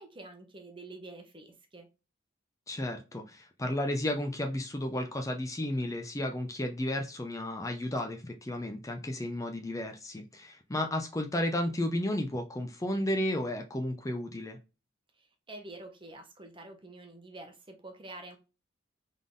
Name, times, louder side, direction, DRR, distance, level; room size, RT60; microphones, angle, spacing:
voice 1, 0.0-1.9 15.2-18.4, right 2 dB, 25° right, 0.9 m, -47 dB
voice 2, 2.7-14.6, left 1 dB, 15° left, 0.5 m, -33 dB
3.9 x 3.6 x 3.7 m
head